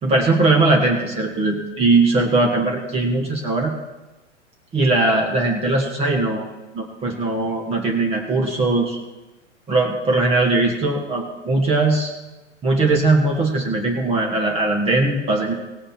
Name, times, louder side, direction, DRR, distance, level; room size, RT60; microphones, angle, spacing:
voice 1, 0.0-3.7 4.7-6.4 6.7-9.0 9.7-12.1 12.6-15.5, right 2 dB, 15° right, 1 dB, 1.5 m, -19 dB
17.5 x 8.6 x 4.4 m, 1.1 s
figure-of-eight pair, 105°, 37 cm